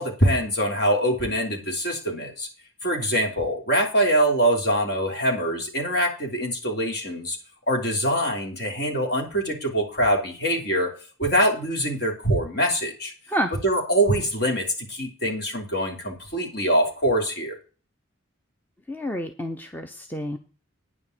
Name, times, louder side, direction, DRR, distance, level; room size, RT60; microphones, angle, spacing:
voice 1, 0.0-2.5 2.8-7.4 7.7-10.9 11.2-13.1 13.6-17.6, right 1 dB, 55° left, 2 dB, 3.4 m, -24 dB
voice 2, 18.9-20.4, equal, 10° left, 5 dB, 0.7 m, -29 dB
9.6 x 5.6 x 8.0 m, 0.36 s
head